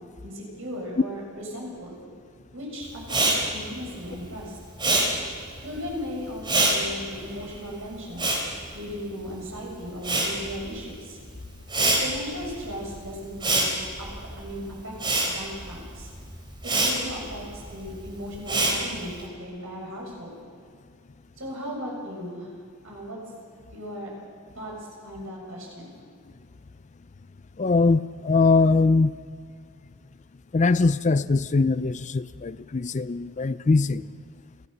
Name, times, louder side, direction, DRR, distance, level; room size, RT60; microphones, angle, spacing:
voice 1, 0.2-2.0 2.5-3.2 3.5-4.6 5.6-8.3 8.7-11.2 12.0-13.7 14.0-14.1 14.4-14.9 15.3-16.1 16.7-20.4 21.4-22.5 22.8-23.2 23.7-24.1 24.5-24.7 25.0-25.9, equal, 70° right, -2 dB, 7.0 m, -36 dB
Respiratory sounds, 3.0-9.5 9.8-19.2, right 2 dB, 20° right, 3.5 m, -27 dB
voice 2, 27.6-29.1 30.5-34.0, left 3 dB, 35° left, 16 dB, 0.4 m, -21 dB
29.5 x 14.0 x 6.7 m, 2.1 s
head